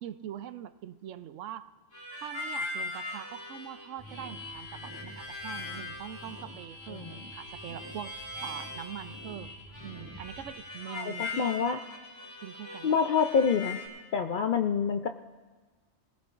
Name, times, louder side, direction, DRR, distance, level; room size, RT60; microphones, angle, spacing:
voice 1, 0.0-1.7 2.1-9.6 9.8-11.6 12.4-13.0, right 10 dB, 80° right, 12 dB, 0.9 m, -43 dB
Harmonica, 1.9-13.9, left 2 dB, 85° left, 3.6 m, -41 dB
sound 1, 4.0-10.5, equal, 20° right, 1.0 m, -49 dB
voice 2, 10.9-11.8 12.8-13.8 14.1-15.1, left 6 dB, 60° left, 7 dB, 0.5 m, -27 dB
21.0 x 16.5 x 2.5 m, 1.3 s
omnidirectional pair, 1.3 m